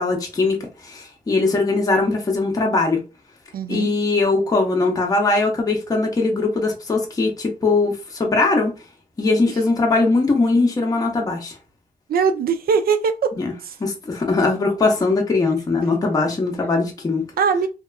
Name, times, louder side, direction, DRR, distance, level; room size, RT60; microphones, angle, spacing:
voice 1, 0.0-3.0 3.7-8.7 9.2-11.6 13.3-13.5 13.8-17.2, left 3 dB, 25° left, 0.5 m, -20 dB
voice 2, 3.5-3.9 12.1-13.4 13.6-13.7 17.4-17.7, right 6 dB, 90° right, 0.4 m, -20 dB
2.9 x 2.3 x 2.3 m
wide cardioid pair, 165°, 15 cm